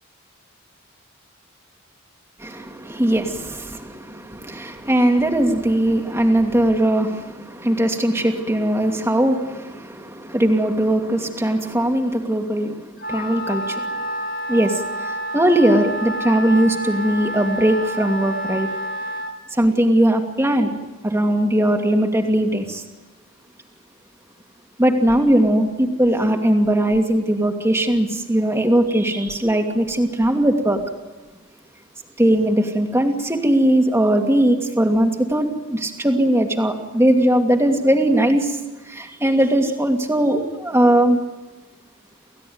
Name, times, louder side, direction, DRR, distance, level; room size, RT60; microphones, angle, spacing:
voice 1, 2.4-12.8 13.1-14.1 14.5-18.7 19.6-20.7 21.0-22.8 24.8-30.8 32.2-38.6 38.9-41.2, right 1 dB, 10° right, 3 dB, 2.5 m, -19 dB
Wind instrument woodwind instrument, 13.0-19.4, equal, 45° left, 2.5 m, -29 dB
29.0 x 16.5 x 9.6 m, 1.2 s
head